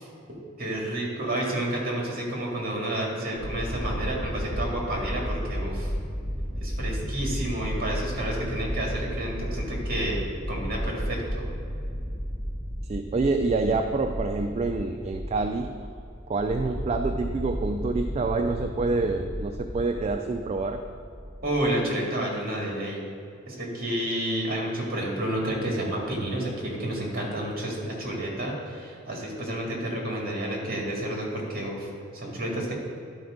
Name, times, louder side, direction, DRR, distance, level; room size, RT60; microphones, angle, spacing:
voice 1, 0.0-5.9 6.5-10.2 10.5-11.5 21.4-23.0 23.5-32.7, right 1 dB, 45° right, -2 dB, 2.0 m, -30 dB
sound 1, 3.4-21.8, equal, 5° left, 1.0 m, -33 dB
voice 2, 12.9-15.8 16.3-20.8, right 3 dB, 30° right, 6 dB, 0.3 m, -27 dB
11.5 x 4.3 x 5.0 m, 2.4 s
head